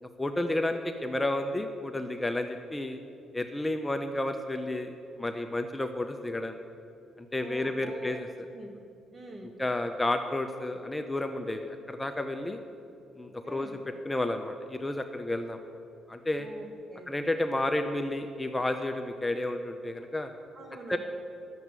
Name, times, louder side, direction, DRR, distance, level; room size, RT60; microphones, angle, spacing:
voice 1, 0.0-3.0 3.3-6.6 7.2-8.3 9.4-12.6 13.2-13.8 14.0-15.6 16.1-16.5 17.1-20.3 20.9-21.0, left 1 dB, 15° left, 6 dB, 0.6 m, -31 dB
voice 2, 7.4-8.2 8.5-8.7 9.1-9.6 13.4-13.8 16.4-17.1 20.5-21.0, right 2 dB, 35° right, 2 dB, 2.0 m, -44 dB
10.5 x 7.3 x 8.1 m, 2.6 s
cardioid pair, 90°, 0 cm